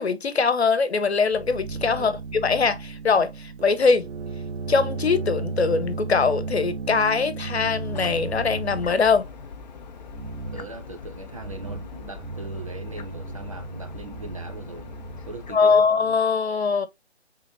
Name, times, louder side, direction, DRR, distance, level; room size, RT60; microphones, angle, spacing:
voice 1, 0.0-4.1 4.7-9.3 15.5-16.9, left 5 dB, 70° left, 1.0 m, -22 dB
sound 1, 1.3-9.0 10.1-10.7 11.3-11.9 12.2-16.2, right 4 dB, 80° right, 0.7 m, -34 dB
sound 2, 7.6-15.6, left 5 dB, 40° left, 0.6 m, -42 dB
voice 2, 10.5-14.9 15.2-15.8, right 3 dB, 30° right, 0.5 m, -40 dB
5.1 x 3.7 x 2.6 m
figure-of-eight pair, 145°, 33 cm